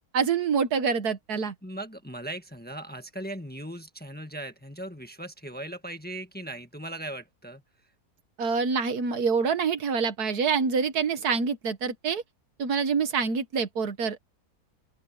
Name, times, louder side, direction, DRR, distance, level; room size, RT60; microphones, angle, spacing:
voice 1, 0.1-1.5 8.4-12.2 12.6-14.2, right 5 dB, 75° right, 1.8 m, -26 dB
voice 2, 1.6-7.6, right 1 dB, 5° left, 1.3 m, -38 dB
open air
omnidirectional pair, 1.7 m